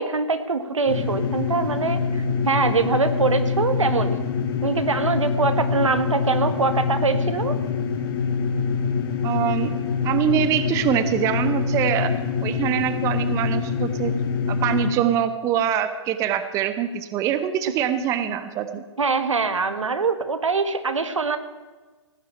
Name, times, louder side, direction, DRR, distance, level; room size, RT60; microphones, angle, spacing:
voice 1, 0.0-4.2 4.6-7.6 19.0-21.4, right 4 dB, 85° right, 10 dB, 1.7 m, -23 dB
sound 1, 0.9-14.9, left 5 dB, 45° left, 2.4 m, -25 dB
voice 2, 9.2-9.7 10.0-12.1 12.4-14.1 14.5-18.8, right 9 dB, 20° right, 11 dB, 0.7 m, -24 dB
17.5 x 6.2 x 9.3 m, 1.3 s
hypercardioid pair, 140°, 16 cm